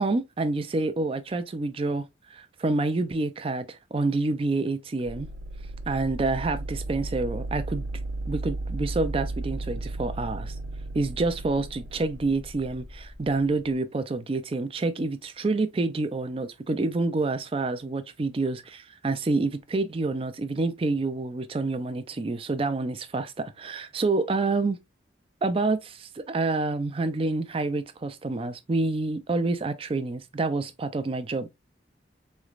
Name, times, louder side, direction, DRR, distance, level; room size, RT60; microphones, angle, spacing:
voice 1, 0.0-2.1 2.3-5.3 5.9-7.9 8.3-10.5 10.9-24.8 25.4-31.5, right 3 dB, 30° right, 0.4 m, -28 dB
sound 1, 5.0-13.7, right 2 dB, 75° right, 1.0 m, -35 dB
4.0 x 3.2 x 2.4 m
head